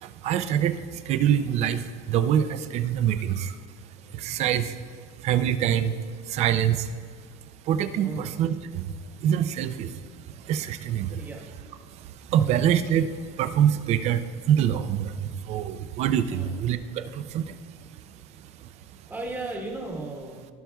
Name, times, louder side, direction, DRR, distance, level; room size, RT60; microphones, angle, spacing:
voice 1, 0.0-3.6 4.1-4.8 5.2-5.9 6.3-7.0 7.6-8.8 9.2-9.9 10.4-11.2 12.0-13.1 13.4-17.6 18.6-18.7, right 9 dB, 35° right, 11 dB, 0.4 m, -25 dB
voice 2, 12.4-12.8 16.3-16.7 18.6-18.7 19.1-20.5, right 2 dB, 10° right, 0 dB, 1.1 m, -36 dB
16.5 x 5.8 x 2.3 m, 2.1 s
cardioid pair, 160°, 19 cm